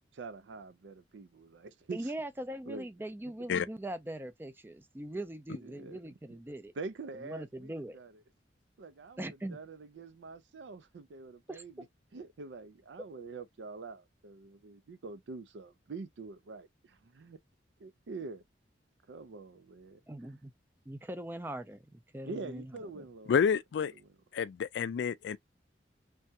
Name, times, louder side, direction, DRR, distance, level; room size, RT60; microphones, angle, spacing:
voice 1, 0.1-2.1 2.7-2.9 3.2-3.3 5.6-6.1 6.8-8.1 8.8-11.9 12.1-17.4 17.8-18.4 19.1-20.0 22.2-23.5 23.9-24.2, right 3 dB, 80° right, 0.4 m, -45 dB
voice 2, 1.9-6.7 7.2-8.0 9.2-9.6 11.5-11.6 20.1-20.5 20.9-23.0, right 1 dB, 10° right, 0.4 m, -41 dB
voice 3, 23.3-23.9 24.3-25.4, left 7 dB, 70° left, 0.3 m, -29 dB
3.3 x 2.2 x 2.7 m
head